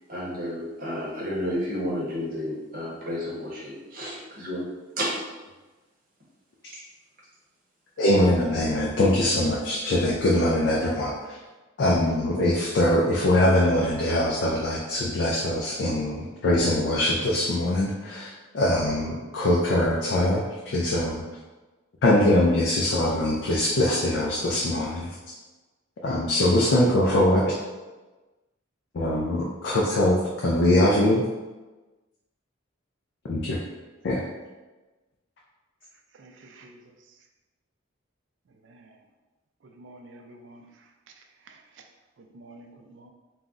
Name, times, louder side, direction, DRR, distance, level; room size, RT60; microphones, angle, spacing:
voice 1, 0.1-4.6 5.0-5.1 6.7-6.8, equal, 45° right, -5 dB, 0.7 m, -31 dB
voice 2, 8.0-11.1 11.8-21.2 22.0-25.1 26.0-27.5 28.9-31.2 33.3-33.6 34.0-34.2, left 1 dB, 55° left, -3 dB, 0.3 m, -22 dB
voice 3, 36.2-36.8 38.6-38.9 39.8-40.6 41.5-41.6 42.3-43.1, right 2 dB, 65° right, 3 dB, 0.3 m, -49 dB
2.3 x 2.0 x 3.6 m, 1.2 s
head